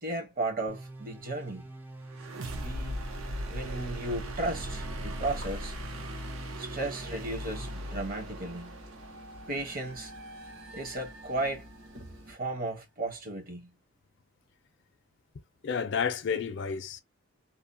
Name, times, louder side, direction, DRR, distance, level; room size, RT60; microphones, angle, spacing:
voice 1, 0.0-1.7 2.5-3.0 3.5-5.7 6.6-8.8 9.5-10.1 10.7-11.7 12.3-13.7, right 2 dB, 45° right, 0.9 m, -35 dB
sound 1, 0.7-7.9, right 2 dB, 10° right, 0.3 m, -46 dB
sound 2, 2.1-11.9, equal, 90° right, 0.6 m, -39 dB
sound 3, 4.4-12.3, equal, 70° right, 1.3 m, -51 dB
voice 2, 15.6-17.0, left 6 dB, 60° left, 0.4 m, -30 dB
2.7 x 2.0 x 2.5 m
head